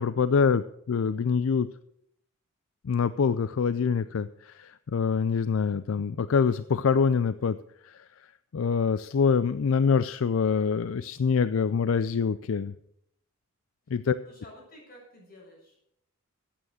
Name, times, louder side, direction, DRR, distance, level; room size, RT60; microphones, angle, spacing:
voice 1, 0.0-1.7 2.8-7.6 7.8-12.7 13.9-14.1, left 6 dB, 70° left, 15 dB, 0.4 m, -25 dB
voice 2, 14.2-15.8, left 1 dB, 45° left, -2 dB, 6.9 m, -51 dB
14.0 x 8.9 x 6.4 m, 0.75 s
head